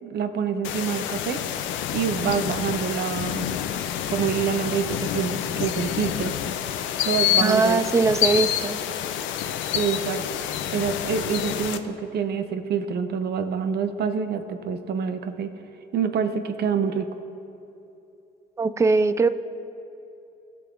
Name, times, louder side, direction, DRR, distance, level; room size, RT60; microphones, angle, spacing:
voice 1, 0.0-1.4 1.9-3.5 4.1-6.3 7.0-7.8 9.7-10.2 10.7-15.5 15.9-17.1, right 6 dB, 55° right, 9 dB, 0.7 m, -26 dB
sound 1, 0.6-11.8, left 10 dB, 70° left, 0.5 m, -28 dB
voice 2, 7.4-8.8 18.6-19.3, right 4 dB, 15° right, 12 dB, 0.3 m, -21 dB
16.0 x 6.0 x 2.5 m, 2.8 s
supercardioid pair, 75°, 20 cm